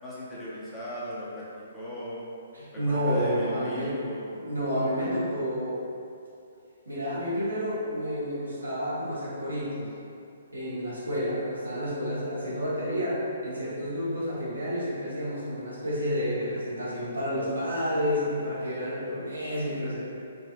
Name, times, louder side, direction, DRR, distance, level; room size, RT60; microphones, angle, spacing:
voice 1, 0.0-1.4 1.7-2.2 2.7-4.3 4.7-5.1, equal, 10° left, -10 dB, 0.9 m, -38 dB
voice 2, 2.5-3.9 4.3-5.8 6.9-9.9 10.5-20.0, equal, 85° right, -9 dB, 1.2 m, -30 dB
4.1 x 2.6 x 2.5 m, 2.5 s
figure-of-eight pair, 130°, 0 cm